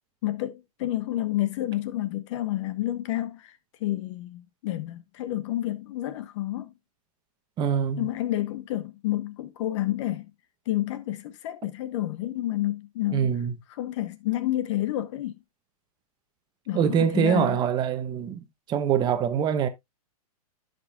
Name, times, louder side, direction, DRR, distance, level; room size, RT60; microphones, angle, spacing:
voice 1, 0.2-6.7 8.0-10.3 10.7-13.3 13.7-15.4 16.7-17.6, left 14 dB, 50° left, 0.7 m, -30 dB
voice 2, 7.6-8.1 13.1-13.5 16.7-19.7, right 8 dB, 20° right, 0.9 m, -24 dB
13.5 x 5.2 x 2.3 m
hypercardioid pair, 135°, 19 cm